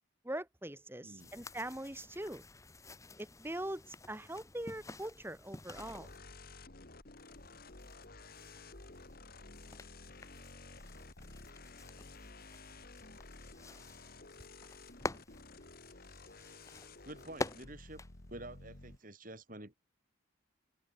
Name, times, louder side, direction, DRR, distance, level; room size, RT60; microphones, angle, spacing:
voice 1, 0.2-2.4 3.2-6.1, right 1 dB, 10° right, 1.6 m, -42 dB
voice 2, 1.0-1.3 17.0-18.0 18.3-19.7, right 2 dB, 40° right, 3.2 m, -49 dB
sound 1, 1.2-6.2 7.2-19.0, left 2 dB, 15° left, 1.1 m, -48 dB
sound 2, 5.7-19.0, left 3 dB, 45° left, 2.2 m, -53 dB
open air
head